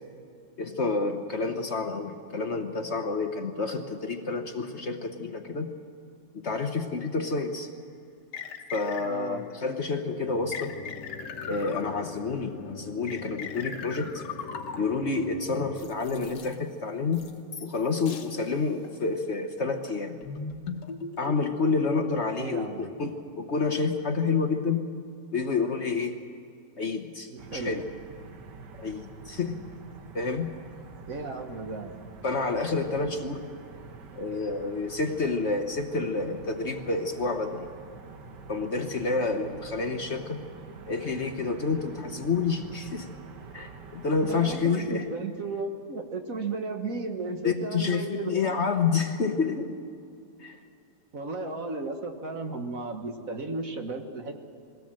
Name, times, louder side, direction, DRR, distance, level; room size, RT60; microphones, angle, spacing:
voice 1, 0.6-5.7 6.3-7.7 8.7-10.8 11.5-14.2 14.7-17.3 17.6-20.2 21.2-24.8 25.3-26.1 26.8-27.8 28.8-29.6 30.1-30.6 32.2-33.5 34.1-37.7 38.5-40.4 40.9-43.1 43.5-45.0 47.4-49.8 50.4-50.6, left 4 dB, 45° left, 5 dB, 1.2 m, -29 dB
sound 1, 7.3-7.4 8.3-9.4 10.5-12.3 13.1-15.1 15.8-16.5 17.1-17.8 18.1-18.3 18.8-19.0 19.7-21.6, left 6 dB, 80° left, 1.8 m, -39 dB
voice 2, 9.0-9.5 22.4-22.9 27.3-27.7 31.1-32.0 44.2-48.5 51.1-54.4, right 3 dB, 55° right, 4 dB, 1.8 m, -34 dB
sound 2, 10.2-15.8, left 5 dB, 60° left, 1.5 m, -43 dB
sound 3, 27.4-44.6, right 4 dB, 90° right, 1.8 m, -47 dB
21.5 x 17.5 x 7.6 m, 2.4 s
omnidirectional pair, 1.8 m